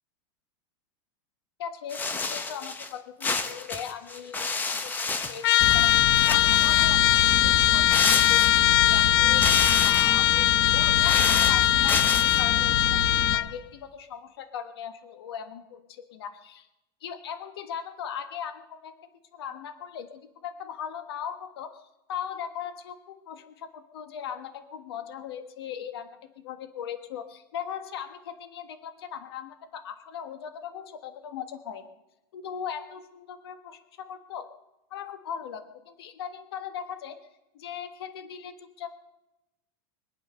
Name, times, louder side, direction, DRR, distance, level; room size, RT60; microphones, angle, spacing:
voice 1, 1.6-5.9 6.2-9.4 9.8-16.7 17.0-18.9 19.3-21.8 22.1-26.1 26.4-31.8 32.3-34.5 34.9-37.2 37.5-39.0, left 8 dB, 85° left, 9 dB, 1.4 m, -39 dB
sound 1, 1.9-2.9 3.2-5.9 6.2-7.0 7.9-8.9 9.3-10.2 10.8-12.4, left 4 dB, 15° left, 0.9 m, -30 dB
Trumpet, 5.4-13.5, left 14 dB, 70° left, 0.4 m, -21 dB
sound 2, 5.6-13.3, left 5 dB, 45° left, 1.3 m, -30 dB
23.0 x 8.9 x 6.6 m, 0.94 s
supercardioid pair, 150°, 13 cm